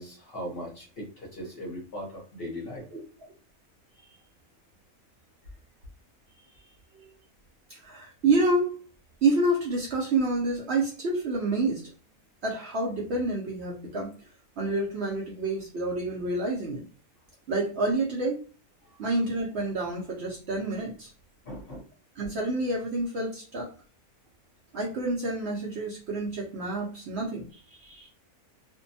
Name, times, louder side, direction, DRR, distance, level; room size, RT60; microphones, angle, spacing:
voice 1, 0.0-2.8 4.0-4.2 6.5-6.7 21.4-21.8, equal, 50° left, -3 dB, 0.8 m, -39 dB
voice 2, 7.7-8.7 9.2-11.8 12.4-14.1 14.6-16.8 17.5-18.4 19.0-21.1 22.2-23.7 24.7-28.1, right 2 dB, 60° right, -3 dB, 0.8 m, -28 dB
2.6 x 2.2 x 2.6 m, 0.37 s
omnidirectional pair, 1.5 m